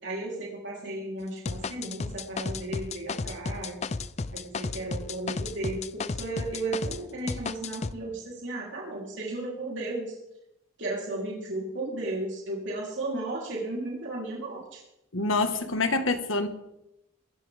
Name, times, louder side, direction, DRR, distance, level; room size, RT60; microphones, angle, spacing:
voice 1, 0.0-3.8 4.3-10.2 10.8-14.8, right 2 dB, 65° right, -4 dB, 3.6 m, -34 dB
sound 1, 1.5-7.0 7.3-7.9, left 4 dB, 35° left, 0.5 m, -33 dB
voice 2, 15.1-16.5, left 3 dB, 80° left, 8 dB, 1.6 m, -26 dB
22.0 x 14.5 x 3.6 m, 0.86 s
head